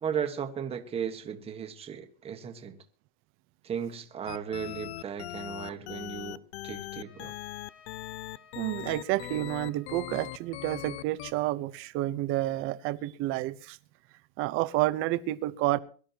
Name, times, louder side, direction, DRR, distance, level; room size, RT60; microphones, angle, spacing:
voice 1, 0.0-2.8 3.6-7.3, right 7 dB, 20° right, 1.5 m, -36 dB
sound 1, 4.3-11.3, left 15 dB, 85° left, 0.7 m, -40 dB
Trumpet, 7.0-11.9, left 6 dB, 45° left, 3.3 m, -59 dB
voice 2, 8.5-13.8 14.1-15.8, right 16 dB, 40° right, 0.9 m, -30 dB
23.0 x 12.5 x 2.9 m
supercardioid pair, 155°, 32 cm